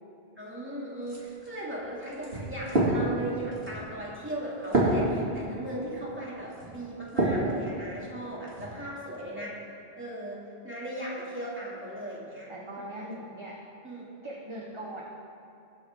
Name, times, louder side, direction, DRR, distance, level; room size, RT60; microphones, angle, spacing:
voice 1, 0.4-13.1 13.8-14.1, right 1 dB, 10° right, -6 dB, 2.6 m, -38 dB
sound 1, 1.0-7.5 8.0-8.7, right 1 dB, 75° right, 2.9 m, -30 dB
voice 2, 12.5-13.6 14.2-15.1, right 1 dB, 30° right, -3 dB, 1.1 m, -40 dB
22.0 x 7.9 x 3.8 m, 2.7 s
omnidirectional pair, 1.1 m